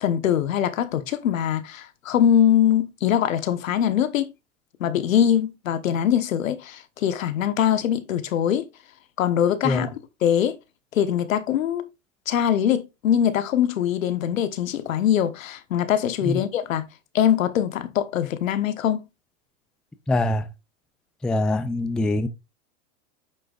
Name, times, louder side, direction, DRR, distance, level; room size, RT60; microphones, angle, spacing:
voice 1, 0.0-4.3 4.8-8.7 9.2-10.6 10.9-11.9 12.3-16.9 17.1-19.1, left 10 dB, 85° left, 1.2 m, -22 dB
voice 2, 20.1-20.4 21.2-22.3, left 2 dB, ahead, 0.3 m, -23 dB
9.0 x 6.8 x 2.4 m
hypercardioid pair, 110°, 39 cm